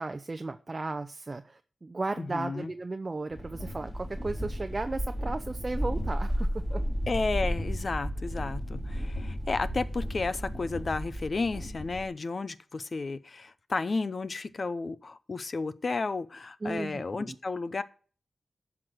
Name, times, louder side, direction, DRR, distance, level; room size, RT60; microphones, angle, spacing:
voice 1, 0.0-6.8 16.6-17.4, right 3 dB, 35° right, 0.6 m, -35 dB
voice 2, 2.2-2.7 7.1-17.8, left 3 dB, 50° left, 0.7 m, -32 dB
sound 1, 3.3-12.1, equal, 25° left, 4.7 m, -33 dB
11.5 x 6.0 x 6.2 m
wide cardioid pair, 85°, 0 cm